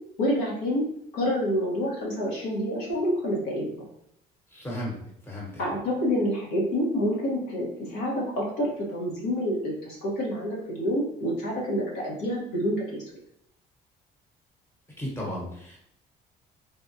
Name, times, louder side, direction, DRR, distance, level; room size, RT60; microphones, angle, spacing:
voice 1, 0.2-0.8 1.1-3.7 5.6-13.0, equal, 85° left, -4 dB, 1.2 m, -28 dB
voice 2, 4.5-5.0 5.2-5.6 15.0-15.8, equal, 15° left, -3 dB, 1.1 m, -34 dB
3.3 x 2.2 x 2.7 m, 0.74 s
cardioid pair, 110°, 17 cm